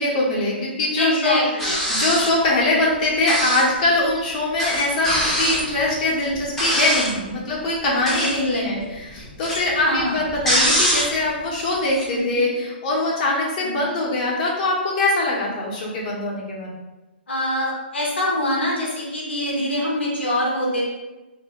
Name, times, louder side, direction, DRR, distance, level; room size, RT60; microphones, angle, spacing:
voice 1, 0.0-16.7, left 2 dB, 45° left, -5 dB, 0.8 m, -22 dB
voice 2, 1.0-1.8 8.1-8.7 9.9-10.2 12.1-12.4 13.6-13.9 17.3-20.8, left 1 dB, 85° left, -3 dB, 0.8 m, -24 dB
sound 1, 1.6-2.4 3.3-3.8 4.1-4.2 4.6-7.2 7.9-8.5 8.8-11.3 11.6-12.0, equal, 5° left, 0.6 m, -23 dB
2.1 x 2.1 x 3.5 m, 1.1 s
hypercardioid pair, 130°, 6 cm